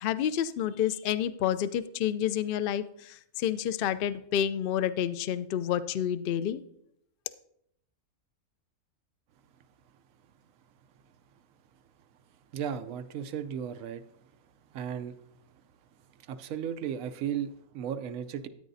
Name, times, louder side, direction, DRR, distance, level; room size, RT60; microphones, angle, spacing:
voice 1, 0.0-6.6, left 10 dB, 80° left, 13 dB, 0.5 m, -29 dB
voice 2, 12.5-14.0 14.7-15.2 16.3-18.5, right 8 dB, 70° right, 9 dB, 1.0 m, -35 dB
13.5 x 9.1 x 2.6 m, 0.74 s
omnidirectional pair, 1.5 m